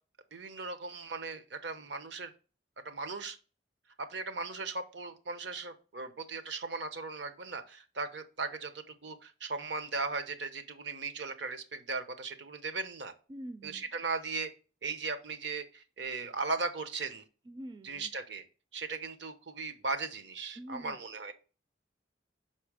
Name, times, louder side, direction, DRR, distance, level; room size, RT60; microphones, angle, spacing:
voice 1, 0.3-2.3 2.8-3.4 4.0-13.1 13.6-14.5 14.8-17.2 17.8-18.4 18.7-21.3, right 3 dB, 70° right, 9 dB, 0.9 m, -37 dB
voice 2, 13.3-13.9 17.4-18.1 20.6-21.0, right 1 dB, 25° right, 9 dB, 0.4 m, -45 dB
5.9 x 4.3 x 4.9 m, 0.35 s
head